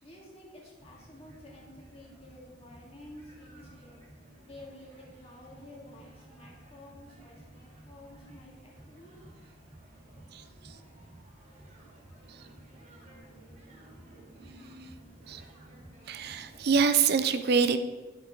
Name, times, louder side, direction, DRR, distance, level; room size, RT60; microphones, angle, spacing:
voice 1, 0.0-4.0 4.4-9.2, left 1 dB, 30° left, -2 dB, 2.3 m, -51 dB
sound 1, 0.8-16.9, right 1 dB, 40° right, 2.3 m, -53 dB
voice 2, 10.3-10.8 12.3-12.5 14.6-14.9 15.2-15.5 16.1-17.8, right 5 dB, 55° right, 10 dB, 0.5 m, -27 dB
10.5 x 7.9 x 3.8 m, 1.3 s
head